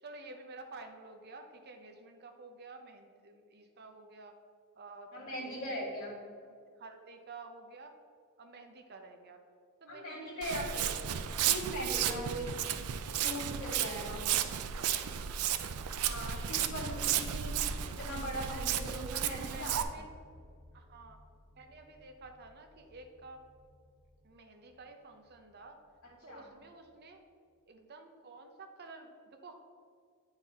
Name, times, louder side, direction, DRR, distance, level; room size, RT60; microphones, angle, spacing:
voice 1, 0.0-4.3 4.7-5.6 6.4-7.9 8.4-9.4 9.8-10.9 14.8-15.0 16.1-16.2 16.6-17.1 17.4-17.5 18.4-18.7 19.5-20.1 20.7-21.2 21.5-23.4 24.2-25.8 26.2-27.2 27.7-29.5, right 3 dB, 50° right, 5 dB, 0.7 m, -51 dB
voice 2, 5.1-6.1 9.9-10.9 11.4-12.6 13.2-14.2 16.0-17.5 17.9-19.8 26.3-26.5, equal, 65° left, -6 dB, 1.7 m, -40 dB
Walk footsteps, 10.4-19.8, right 9 dB, 90° right, 0.4 m, -33 dB
sound 1, 15.3-26.7, equal, 10° left, 1.4 m, -56 dB
8.8 x 4.0 x 4.1 m, 2.2 s
head